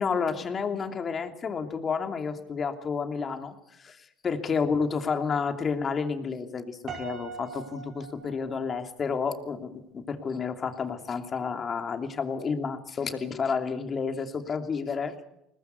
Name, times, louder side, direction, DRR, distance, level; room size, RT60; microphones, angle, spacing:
voice 1, 0.0-15.1, left 5 dB, 35° left, 6 dB, 2.8 m, -30 dB
Piano, 6.9-9.1, right 5 dB, 45° right, 5.2 m, -42 dB
22.0 x 19.5 x 8.1 m, 0.81 s
supercardioid pair, 95°, 0 cm